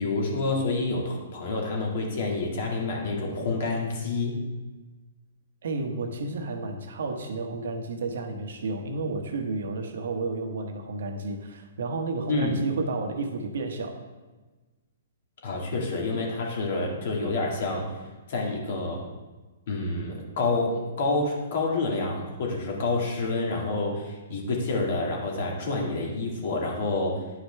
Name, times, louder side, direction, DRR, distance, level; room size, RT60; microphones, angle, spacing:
voice 1, 0.0-4.4 12.3-12.6 15.4-18.0 18.3-19.0 19.7-27.3, left 3 dB, 60° left, -1 dB, 1.8 m, -28 dB
voice 2, 5.6-14.0, right 3 dB, 75° right, 4 dB, 1.1 m, -31 dB
9.9 x 5.0 x 3.2 m, 1.2 s
hypercardioid pair, 150°, 0 cm